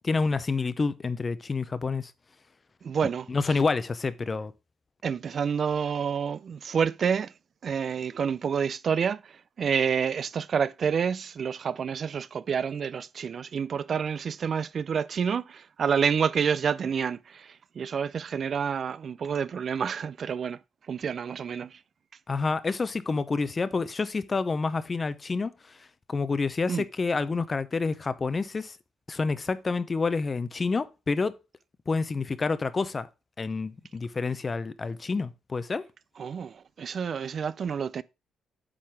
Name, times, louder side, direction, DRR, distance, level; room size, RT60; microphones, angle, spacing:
voice 1, 0.0-2.1 3.3-4.5 22.3-28.8 29.1-31.3 31.9-33.1 33.4-35.8, left 4 dB, 30° left, 0.6 m, -28 dB
voice 2, 2.8-3.3 5.0-7.3 7.6-20.6 20.9-21.8 26.7-26.8 36.2-38.0, right 7 dB, 50° right, 0.3 m, -28 dB
8.7 x 3.9 x 4.6 m
cardioid pair, 90°, 0 cm